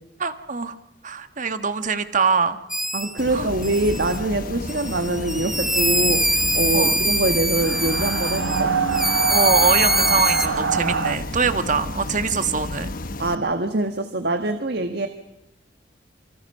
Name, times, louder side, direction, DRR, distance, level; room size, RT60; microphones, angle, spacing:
voice 1, 0.2-0.8 1.0-2.6 3.3-3.5 6.7-7.0 9.3-12.9, right 5 dB, 45° right, 10 dB, 1.5 m, -23 dB
sound 1, 2.7-3.2 3.6-4.2 4.7-8.6 8.9-10.5, equal, ahead, 1.2 m, -23 dB
voice 2, 2.9-8.8 13.2-15.1, right 2 dB, 60° right, 7 dB, 1.6 m, -24 dB
sound 2, 3.2-13.3, left 2 dB, 50° left, 1.1 m, -32 dB
sound 3, 7.6-11.2, right 5 dB, 80° right, 1.4 m, -24 dB
28.0 x 25.0 x 5.6 m, 0.91 s
head